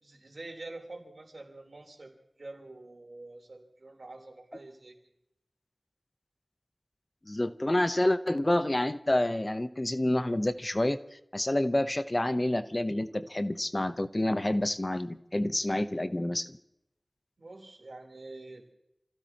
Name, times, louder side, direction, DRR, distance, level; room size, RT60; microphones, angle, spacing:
voice 1, 0.0-2.1 2.4-4.9 17.4-18.6, right 2 dB, 70° right, 1 dB, 3.6 m, -46 dB
voice 2, 7.3-11.0 11.3-16.6, left 1 dB, 30° left, 10 dB, 0.8 m, -28 dB
29.0 x 16.0 x 2.9 m, 0.81 s
wide cardioid pair, 65°, 0 cm